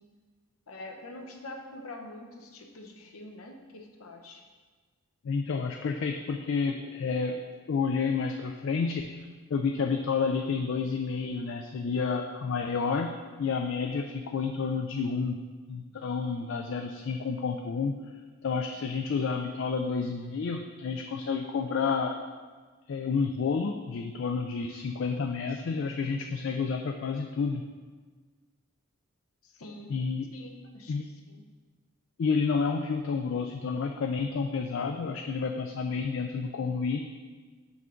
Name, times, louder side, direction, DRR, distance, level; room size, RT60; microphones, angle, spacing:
voice 1, 0.7-4.4 29.4-29.9 30.3-31.4, left 2 dB, 80° left, 3 dB, 0.8 m, -45 dB
voice 2, 5.2-13.1 13.4-15.4 15.7-18.0 18.4-22.2 22.9-27.6 29.9-30.3 30.9-31.1 32.2-37.0, left 5 dB, 55° left, 4 dB, 0.3 m, -30 dB
6.0 x 5.6 x 3.7 m, 1.4 s
head